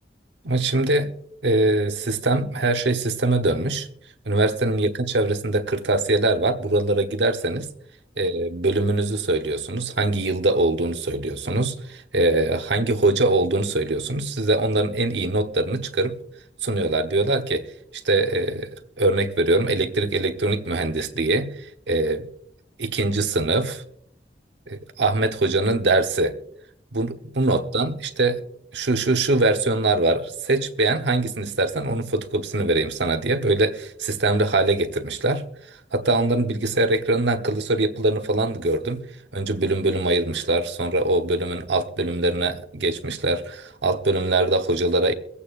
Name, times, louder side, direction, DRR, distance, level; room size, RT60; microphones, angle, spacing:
voice 1, 0.4-1.1 1.4-3.9 4.3-7.7 8.2-16.2 16.6-17.7 17.9-18.7 19.0-21.5 21.9-22.3 22.8-23.8 24.7-26.3 26.9-28.4 28.7-35.4 35.9-39.0 39.3-45.1, right 2 dB, 85° right, 1.1 m, -22 dB
24.0 x 8.4 x 2.5 m
head